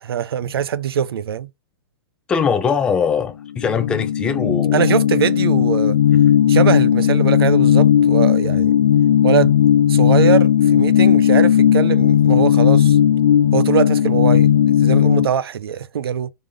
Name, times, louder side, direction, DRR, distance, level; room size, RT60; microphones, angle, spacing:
voice 1, 0.0-1.5 4.7-6.0 6.5-8.7 9.2-9.6 9.9-13.0 13.5-16.3, right 9 dB, 85° right, 0.5 m, -22 dB
voice 2, 2.3-4.8, left 6 dB, 5° left, 0.4 m, -21 dB
sound 1, 3.6-15.3, left 9 dB, 50° left, 0.6 m, -15 dB
3.7 x 3.3 x 3.5 m
hypercardioid pair, 170°, 12 cm